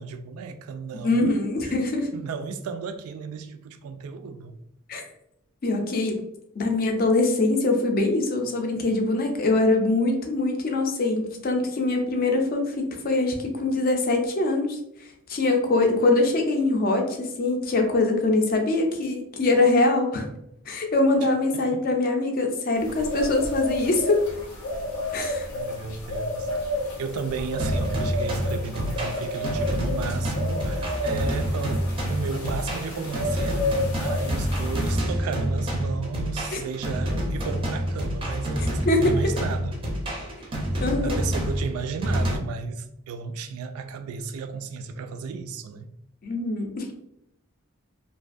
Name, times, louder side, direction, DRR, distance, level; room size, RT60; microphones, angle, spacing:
voice 1, 0.0-1.3 1.6-1.8 2.1-4.6 25.5-26.7 27.0-33.7 34.0-39.7 40.8-45.9, right 5 dB, 90° right, 0.3 m, -34 dB
voice 2, 1.0-2.1 4.9-5.0 5.6-6.2 6.6-14.8 15.3-20.2 20.7-24.2 25.1-25.5 36.5-36.6 38.9-39.1 40.8-41.2 46.2-46.9, left 2 dB, 45° left, 0.4 m, -23 dB
sound 1, 22.8-34.9, left 1 dB, 85° left, 0.6 m, -31 dB
sound 2, 27.6-42.4, equal, 25° right, 0.4 m, -28 dB
2.4 x 2.3 x 2.4 m
head